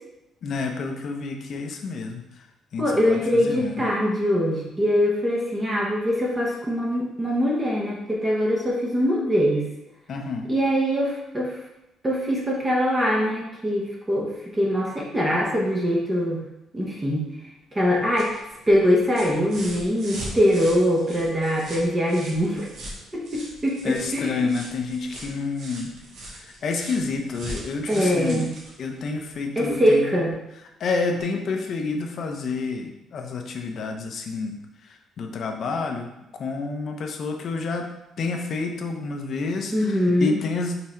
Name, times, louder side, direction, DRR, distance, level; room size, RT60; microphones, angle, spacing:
voice 1, 0.4-2.2 2.7-3.8 10.1-10.5 23.8-26.0 26.2-28.5 28.8-30.1 30.8-34.6 34.8-40.8, left 4 dB, 50° left, 3 dB, 0.8 m, -29 dB
voice 2, 2.8-9.7 10.5-11.5 12.0-16.4 16.7-17.3 17.7-18.3 18.7-22.7 23.1-24.4 27.9-28.5 29.6-30.3 39.7-40.3, equal, 15° right, -3 dB, 1.1 m, -23 dB
sound 1, 17.8-29.8 31.1-31.2, right 1 dB, 55° right, 1.7 m, -40 dB
5.7 x 3.9 x 4.4 m, 0.90 s
cardioid pair, 150°, 0 cm